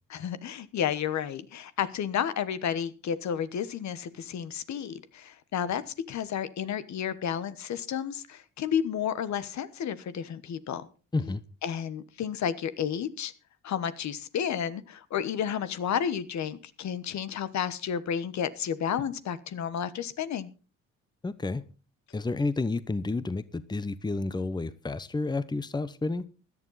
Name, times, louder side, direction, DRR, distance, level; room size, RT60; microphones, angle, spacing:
voice 1, 0.1-5.8 6.1-10.9 11.6-13.3 13.6-20.5, left 8 dB, 65° left, 1.2 m, -31 dB
voice 2, 21.2-21.6 22.1-26.2, left 3 dB, 15° left, 0.9 m, -30 dB
17.0 x 11.0 x 4.0 m
cardioid pair, 90°, 30 cm